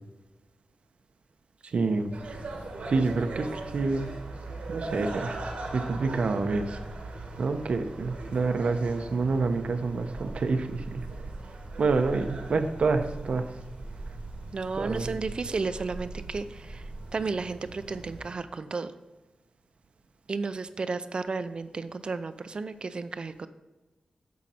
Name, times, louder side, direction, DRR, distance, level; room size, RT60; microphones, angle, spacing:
voice 1, 1.7-2.1 2.9-4.1 4.7-5.3 5.7-6.7 7.4-11.0 11.8-13.4 14.8-15.0, right 4 dB, 70° right, 8 dB, 0.8 m, -27 dB
sound 1, 2.1-18.3, right 2 dB, 85° right, 1.8 m, -41 dB
sound 2, 10.1-16.9, right 2 dB, 25° right, 1.4 m, -42 dB
voice 2, 14.5-18.9 20.3-23.5, right 4 dB, 45° right, 11 dB, 0.5 m, -33 dB
9.5 x 6.2 x 4.4 m, 1.1 s
wide cardioid pair, 130°, 2 cm